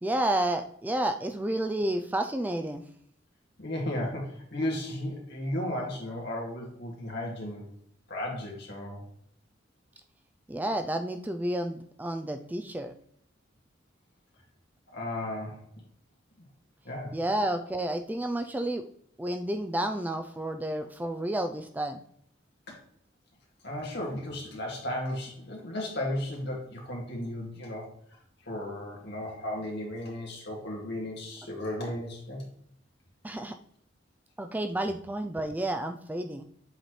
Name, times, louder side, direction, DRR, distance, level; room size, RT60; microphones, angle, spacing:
voice 1, 0.0-2.8 10.5-12.9 17.1-18.8 19.2-22.0 33.2-33.6 34.4-36.4, right 1 dB, 10° right, 7 dB, 0.3 m, -30 dB
voice 2, 3.6-7.7 8.1-9.0 14.9-15.6 16.8-17.1 23.6-27.9 28.5-32.4, left 1 dB, 60° left, -2 dB, 2.1 m, -34 dB
7.8 x 4.2 x 3.2 m, 0.66 s
head